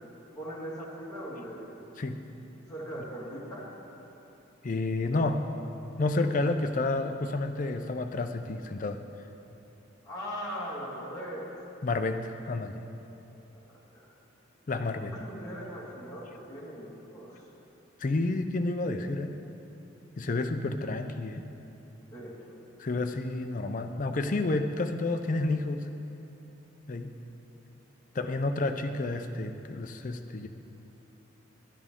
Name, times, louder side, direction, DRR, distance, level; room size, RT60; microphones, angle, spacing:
voice 1, 0.4-1.7 2.7-3.7 10.0-11.5 13.5-14.1 15.0-17.5 22.1-22.3 27.7-27.8, equal, 20° left, -7 dB, 1.8 m, -40 dB
voice 2, 4.6-5.4 6.0-9.0 11.8-12.8 14.7-15.1 18.0-19.4 20.2-21.5 22.8-25.9 26.9-27.2 28.1-30.5, left 2 dB, 40° left, 7 dB, 0.5 m, -30 dB
11.5 x 11.0 x 3.6 m, 2.9 s
head